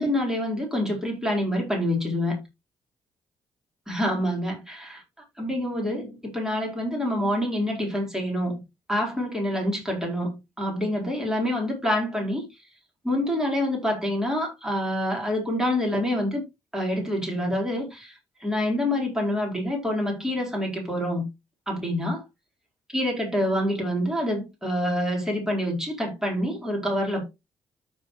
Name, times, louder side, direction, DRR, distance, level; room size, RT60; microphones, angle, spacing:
voice 1, 0.0-2.4 3.9-5.0 5.4-8.6 8.9-12.5 13.0-16.4 16.7-18.1 18.4-21.3 21.7-22.2 22.9-27.2, left 1 dB, 5° right, 4.5 m, -26 dB
13.5 x 4.5 x 3.2 m
hypercardioid pair, 40°, 12 cm